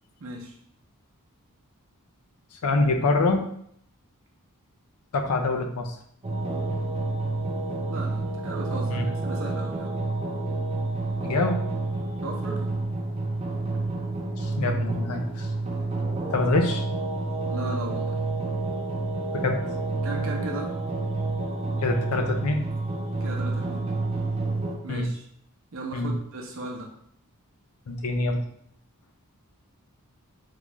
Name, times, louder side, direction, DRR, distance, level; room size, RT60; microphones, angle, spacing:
voice 1, 0.2-0.6 7.9-10.0 12.2-12.7 17.5-18.2 20.0-20.7 23.2-24.0 24.8-25.2 25.7-26.9, right 2 dB, 65° right, 0 dB, 0.7 m, -36 dB
voice 2, 2.6-3.4 5.1-6.0 8.9-9.0 11.2-11.6 14.4-15.5 16.3-16.9 19.3-19.6 21.8-22.6 24.9-25.1 25.9-26.1 27.9-28.4, left 2 dB, 80° left, 5 dB, 0.5 m, -25 dB
sound 1, 6.2-24.8, right 2 dB, 25° right, 0.6 m, -29 dB
3.7 x 2.4 x 3.0 m, 0.68 s
head